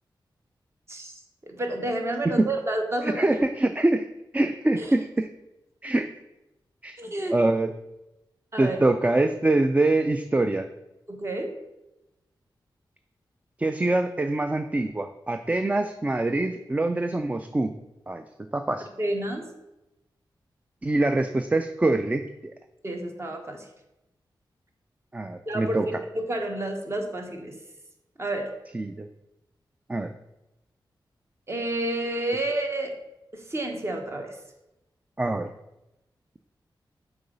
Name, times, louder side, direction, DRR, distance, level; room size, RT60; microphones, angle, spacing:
voice 1, 0.9-3.4 4.7-4.9 7.0-7.4 8.5-8.8 11.1-11.5 19.0-19.4 22.8-23.7 25.5-25.8 26.1-27.6 28.2-28.5 31.5-32.9 33.3-34.4, right 1 dB, 30° right, 3 dB, 1.1 m, -30 dB
voice 2, 3.0-4.1 4.3-5.3 5.8-6.1 6.8-7.0 7.3-7.7 8.6-10.7 13.6-17.7 18.1-18.2 18.5-18.9 20.8-22.5 25.1-25.8 28.7-29.1 29.9-30.1 35.2-35.5, right 2 dB, 15° right, 8 dB, 0.3 m, -24 dB
6.8 x 4.0 x 5.3 m, 0.94 s
wide cardioid pair, 100°, 8 cm